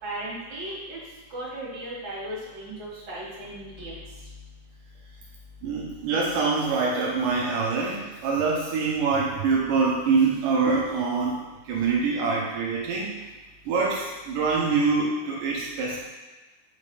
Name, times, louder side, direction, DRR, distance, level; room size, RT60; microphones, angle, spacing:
voice 1, 0.0-1.0 1.3-4.0, right 1 dB, 35° right, -8 dB, 2.6 m, -36 dB
voice 2, 5.6-11.4 11.7-13.2 13.7-16.0, right 4 dB, 90° right, -3 dB, 1.8 m, -25 dB
7.5 x 5.5 x 3.3 m, 1.2 s
omnidirectional pair, 4.8 m